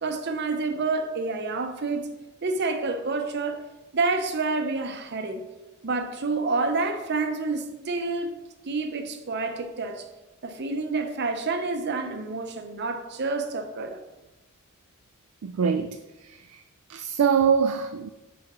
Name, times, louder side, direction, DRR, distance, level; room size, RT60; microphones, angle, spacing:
voice 1, 0.0-2.1 2.4-3.7 3.9-5.5 5.8-10.0 10.4-14.0, right 3 dB, 55° right, 0.7 m, -28 dB
voice 2, 15.4-16.0 16.2-16.6 16.9-18.1, right 6 dB, 85° right, 0.4 m, -24 dB
5.9 x 5.1 x 4.3 m
head